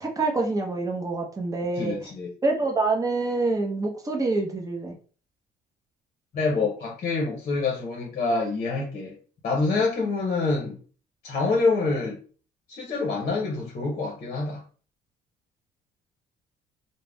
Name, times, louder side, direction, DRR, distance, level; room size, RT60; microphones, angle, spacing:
voice 1, 0.0-2.0 2.4-5.0, right 3 dB, 20° right, 0.7 m, -26 dB
voice 2, 1.8-2.3 6.3-9.1 9.4-10.8 11.2-12.2 12.7-14.6, left 3 dB, 45° left, 0.8 m, -26 dB
2.4 x 2.1 x 3.3 m
cardioid pair, 110°, 17 cm